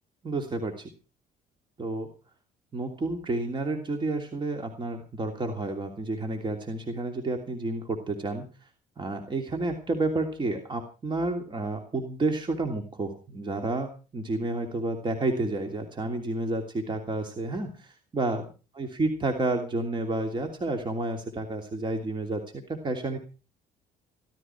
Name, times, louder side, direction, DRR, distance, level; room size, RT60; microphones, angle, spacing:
voice 1, 0.2-0.9 1.8-2.1 2.7-8.7 9.0-18.4 18.7-22.4 22.7-23.2, right 2 dB, 30° right, 4 dB, 3.0 m, -30 dB
16.0 x 15.0 x 4.6 m, 0.35 s
cardioid pair, 110°, 17 cm